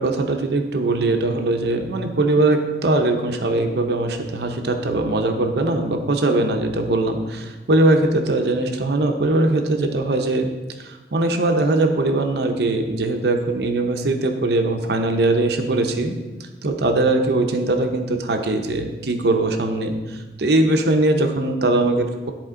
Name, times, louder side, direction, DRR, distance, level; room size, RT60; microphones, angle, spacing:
voice 1, 0.0-10.5 10.8-16.1 16.4-22.3, right 2 dB, 70° right, 5 dB, 0.7 m, -21 dB
10.5 x 4.3 x 3.7 m, 1.2 s
head